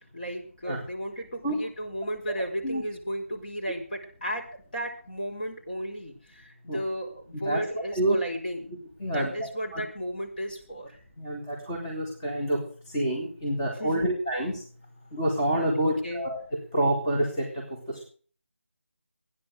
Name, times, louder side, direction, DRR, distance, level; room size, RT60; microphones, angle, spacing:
voice 1, 0.1-4.4 4.7-8.7 9.0-10.9 13.8-14.1 15.8-16.2, equal, 40° left, -1 dB, 4.7 m, -34 dB
voice 2, 9.0-9.8 11.2-12.6 12.9-14.5 15.1-16.4 16.7-18.1, right 1 dB, 20° left, -3 dB, 2.7 m, -28 dB
15.5 x 10.0 x 6.5 m, 0.44 s
figure-of-eight pair, 175°, 7 cm